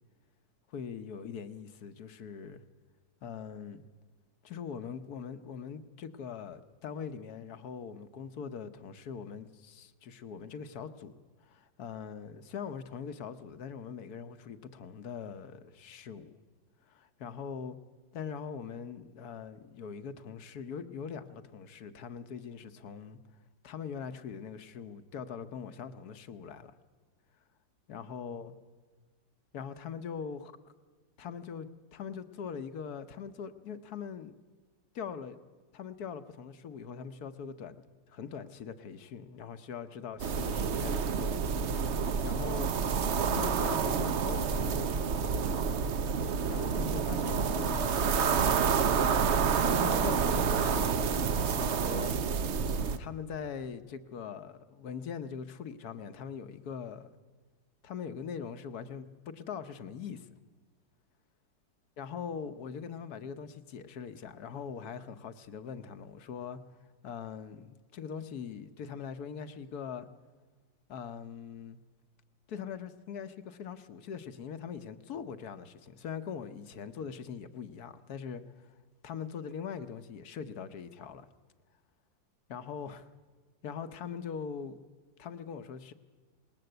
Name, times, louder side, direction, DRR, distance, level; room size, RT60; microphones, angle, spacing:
voice 1, 0.7-2.6 3.2-3.8 4.4-11.1 11.4-16.3 16.9-17.8 18.1-23.2 23.6-26.7 27.9-28.5 29.5-30.5 31.2-34.4 34.9-35.4 35.7-41.4 41.7-42.7 43.3-44.9 46.5-48.7 49.6-52.1 53.0-57.1 57.8-60.3 62.0-66.6 67.0-70.1 70.9-71.8 72.5-78.7 79.0-81.3 82.5-83.1 83.6-84.8 85.2-85.9, left 7 dB, 60° left, 1.3 m, -42 dB
sound 1, 40.2-53.0, right 6 dB, 55° right, 0.8 m, -29 dB
19.5 x 19.5 x 7.9 m
omnidirectional pair, 2.1 m